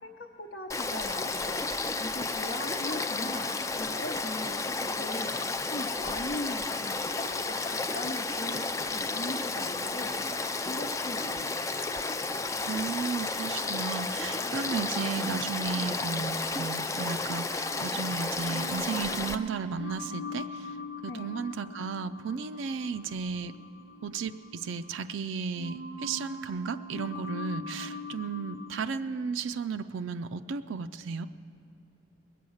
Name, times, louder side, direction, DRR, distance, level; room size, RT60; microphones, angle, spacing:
voice 1, 0.0-1.6 2.0-5.3 5.7-10.1 10.6-11.5 21.1-21.4, left 1 dB, 60° left, -1 dB, 0.8 m, -40 dB
Frog / Stream, 0.7-19.3, left 3 dB, 15° left, 0.3 m, -32 dB
voice 2, 12.6-20.8 21.0-23.5 24.0-31.3, right 5 dB, 75° right, 8 dB, 0.4 m, -34 dB
sound 1, 14.7-18.0 18.4-25.2 25.5-28.8, left 2 dB, 80° left, 1.1 m, -43 dB
21.0 x 8.4 x 6.4 m, 2.7 s
head